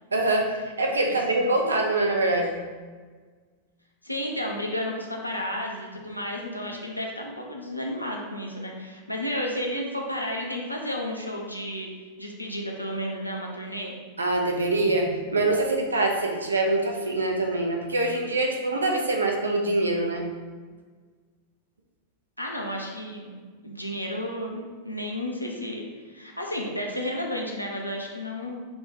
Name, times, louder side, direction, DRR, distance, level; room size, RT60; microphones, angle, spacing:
voice 1, 0.1-2.6 14.2-20.2, right 2 dB, 75° right, 2 dB, 0.4 m, -24 dB
voice 2, 4.0-11.9 12.2-14.0 22.4-28.6, equal, 90° left, 0 dB, 0.5 m, -32 dB
4.0 x 2.2 x 3.4 m, 1.5 s
figure-of-eight pair, 90°, 0 cm